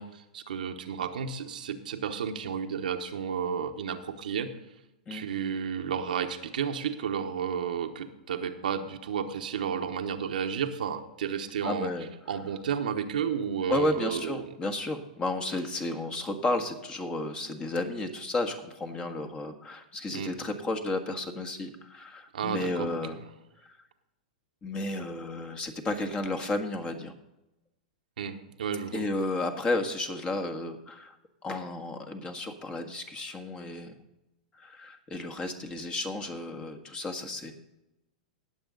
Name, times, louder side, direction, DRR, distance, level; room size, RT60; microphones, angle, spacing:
voice 1, 0.0-4.5 5.1-11.9 12.3-14.4 20.1-20.3 22.3-23.0 28.2-29.0, right 7 dB, 80° right, 6 dB, 1.1 m, -32 dB
voice 2, 11.6-12.1 13.7-23.2 23.6-23.8 24.6-27.1 28.9-31.2 31.4-33.9 34.5-37.5, left 2 dB, 20° left, 6 dB, 1.5 m, -32 dB
19.0 x 7.2 x 3.9 m, 0.95 s
hypercardioid pair, 120°, 4 cm